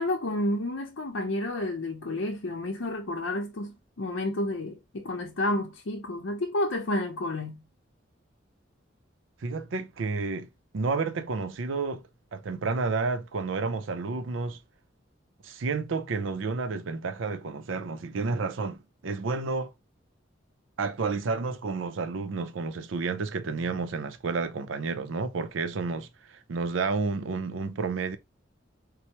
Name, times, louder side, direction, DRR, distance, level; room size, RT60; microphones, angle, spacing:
voice 1, 0.0-7.6, left 1 dB, 85° left, 0.7 m, -30 dB
voice 2, 9.4-10.5 10.7-12.0 12.3-14.6 15.4-19.7 20.8-28.2, right 4 dB, 85° right, 0.5 m, -30 dB
4.4 x 2.0 x 2.8 m
head